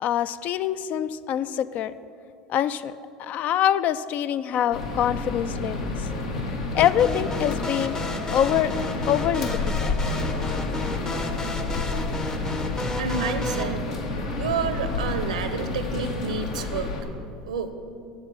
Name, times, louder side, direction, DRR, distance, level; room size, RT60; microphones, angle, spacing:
voice 1, 0.0-1.9 2.5-2.9 3.2-6.1 6.7-8.0 8.3-8.7 9.1-9.9, left 10 dB, 45° left, 14 dB, 0.4 m, -25 dB
sound 1, 4.7-17.0, left 2 dB, 70° left, 1.3 m, -30 dB
sound 2, 6.8-13.6, left 3 dB, 20° left, 0.7 m, -32 dB
voice 2, 13.0-13.8 14.4-16.9 17.5-17.7, right 5 dB, 75° right, 10 dB, 0.7 m, -29 dB
8.0 x 7.2 x 7.5 m, 2.6 s
figure-of-eight pair, 75°, 4 cm